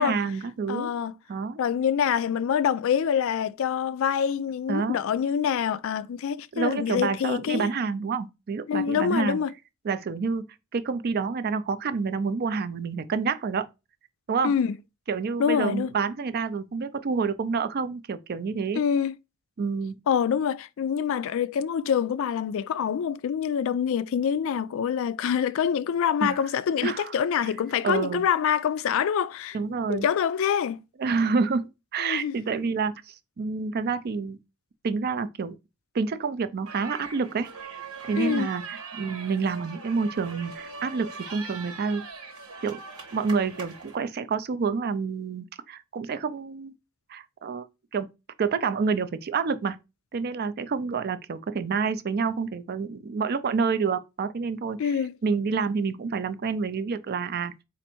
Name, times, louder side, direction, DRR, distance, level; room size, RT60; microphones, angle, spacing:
voice 1, 0.0-0.9 1.3-1.6 4.7-5.0 6.5-9.4 9.8-10.5 10.7-13.7 14.3-14.5 15.1-18.8 19.6-20.0 26.2-26.4 26.8-27.1 27.8-28.2 29.5-30.1 31.0-34.4 34.8-35.6 35.9-37.5 38.0-42.0 42.6-42.8 43.1-46.7 47.1-47.7 47.9-48.1 48.4-49.8 50.1-54.9 55.2-57.5, right 5 dB, 45° right, 0.4 m, -28 dB
voice 2, 0.7-1.1 1.6-7.7 8.7-9.5 14.4-14.8 15.4-15.9 18.7-19.1 20.1-29.6 29.9-30.8 32.0-32.3 38.2-38.5 54.8-55.2, left 8 dB, 65° left, 0.3 m, -26 dB
sound 1, 36.7-44.0, right 5 dB, 85° right, 1.3 m, -41 dB
4.3 x 2.5 x 4.3 m
head